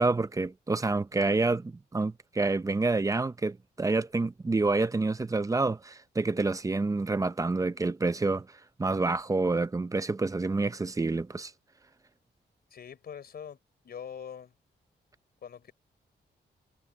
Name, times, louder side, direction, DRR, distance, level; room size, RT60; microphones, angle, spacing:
voice 1, 0.0-8.5 8.8-11.5, right 3 dB, 20° right, 0.6 m, -28 dB
voice 2, 12.7-13.6 13.8-14.5 15.4-15.7, left 8 dB, 60° left, 4.0 m, -43 dB
wide cardioid pair, 145°, 18 cm